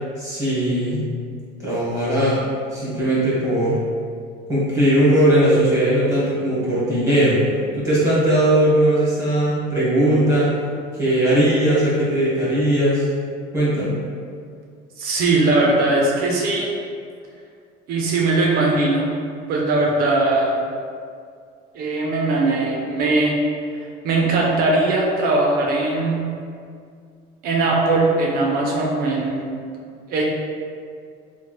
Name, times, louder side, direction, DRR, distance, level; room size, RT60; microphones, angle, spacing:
voice 1, 0.2-1.1 1.6-2.4 2.7-3.8 4.5-7.4 7.7-10.5 10.9-13.1 13.5-13.9, right 1 dB, 15° right, -10 dB, 1.2 m, -19 dB
voice 2, 15.0-16.7 17.9-19.1 19.5-20.6 21.7-23.4 24.0-26.2 27.4-29.5 30.1-30.2, right 2 dB, 55° right, -2 dB, 0.5 m, -20 dB
3.2 x 3.1 x 2.2 m, 2.2 s
cardioid pair, 160°, 19 cm